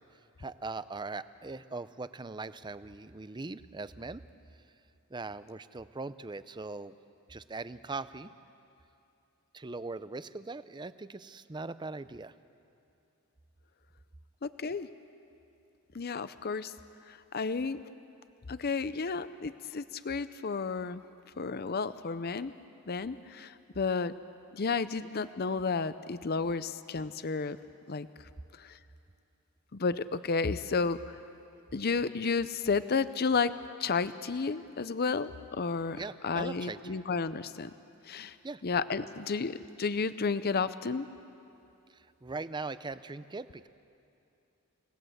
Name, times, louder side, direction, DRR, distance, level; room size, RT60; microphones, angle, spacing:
voice 1, 0.4-4.2 5.1-6.9 7.3-8.3 9.5-12.3 36.0-37.0 38.4-38.6 41.9-43.7, right 3 dB, 20° right, 14 dB, 0.6 m, -40 dB
voice 2, 14.4-14.9 15.9-16.7 17.1-17.8 18.5-21.0 21.4-22.5 22.9-24.1 24.5-27.6 27.9-28.1 28.6-28.8 29.7-31.2 31.7-33.5 33.8-37.7 38.1-38.3 38.6-41.1, left 4 dB, 45° left, 13 dB, 0.6 m, -32 dB
30.0 x 18.5 x 8.0 m, 2.8 s
head